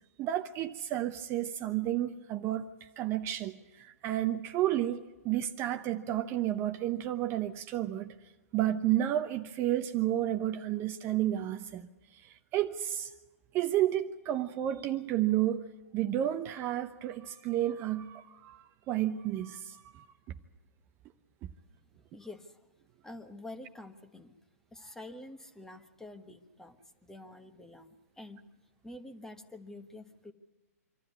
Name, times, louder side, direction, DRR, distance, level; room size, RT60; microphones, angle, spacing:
voice 1, 0.2-8.1 8.5-11.9 12.1-13.1 13.5-15.7 15.9-20.1, right 12 dB, 30° right, 0.8 m, -31 dB
voice 2, 22.1-22.7 23.0-24.4 24.7-28.4 28.8-30.3, left 2 dB, 5° left, 1.4 m, -48 dB
26.0 x 13.0 x 9.5 m
hypercardioid pair, 130°, 9 cm